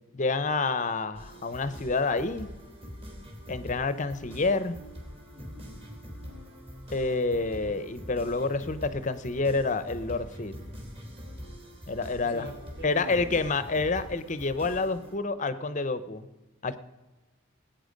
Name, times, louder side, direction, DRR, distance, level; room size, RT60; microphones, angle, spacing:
voice 1, 0.1-2.5 3.5-4.8 6.9-10.6 11.9-12.5 12.8-16.3 16.6-16.8, left 3 dB, 35° left, 13 dB, 0.7 m, -28 dB
sound 1, 1.1-15.2, equal, 30° right, 3.3 m, -44 dB
voice 2, 5.3-5.7 12.2-13.3, equal, 55° right, 1 dB, 3.4 m, -43 dB
19.5 x 8.9 x 5.1 m, 1.2 s
head